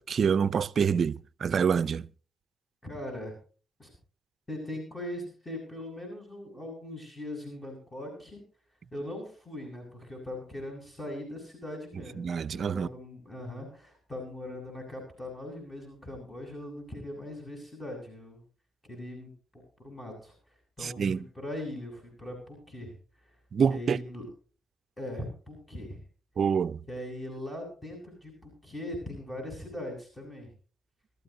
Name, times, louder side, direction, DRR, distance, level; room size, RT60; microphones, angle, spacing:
voice 1, 0.0-2.1 12.2-12.9 20.8-21.2 23.5-24.0 26.4-26.8, right 6 dB, 50° right, 0.6 m, -26 dB
voice 2, 2.8-3.4 3.8-3.9 4.5-8.4 8.9-12.3 12.5-18.4 18.9-20.4 20.8-22.9 23.7-24.3 25.0-26.0 26.9-30.5, left 1 dB, 15° left, 7.5 m, -40 dB
24.0 x 13.5 x 2.8 m
cardioid pair, 90°, 0 cm